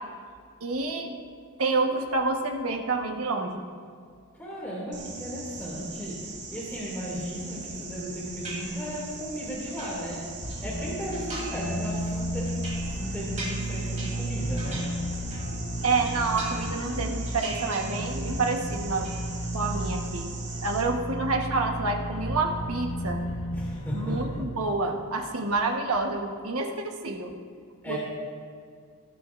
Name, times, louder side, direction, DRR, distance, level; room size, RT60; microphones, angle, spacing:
voice 1, 0.6-1.3 1.6-3.6 15.8-19.1 19.5-20.3 20.6-23.2 23.9-27.3 27.9-28.0, right 3 dB, 70° right, 3 dB, 1.3 m, -28 dB
voice 2, 4.4-14.9 23.5-24.4 27.8-28.0, equal, 10° left, -8 dB, 2.5 m, -35 dB
sound 1, 4.9-20.8, right 4 dB, 55° right, 1.8 m, -41 dB
sound 2, 8.4-9.1 9.5-10.6 11.1-11.7 12.1-15.6 15.9-16.9 17.2-18.3 18.6-19.2, right 2 dB, 35° right, 3.5 m, -41 dB
sound 3, 10.4-24.4, equal, 80° left, 1.4 m, -33 dB
18.5 x 12.0 x 2.6 m, 2.1 s
head